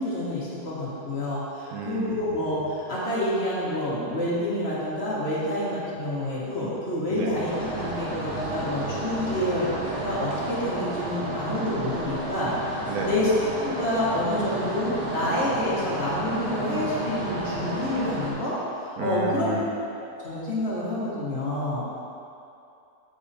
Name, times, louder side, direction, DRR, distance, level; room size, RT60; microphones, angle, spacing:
voice 1, 0.0-9.7 10.0-13.3 13.6-19.5 20.2-21.9, left 1 dB, 40° left, -8 dB, 1.7 m, -28 dB
voice 2, 1.7-2.2 7.1-7.3 12.9-13.1 19.0-19.6, right 5 dB, 70° right, 0 dB, 1.3 m, -31 dB
sound 1, 7.5-18.3, right 2 dB, 50° right, 1.5 m, -32 dB
7.7 x 4.8 x 4.1 m, 2.7 s
omnidirectional pair, 1.7 m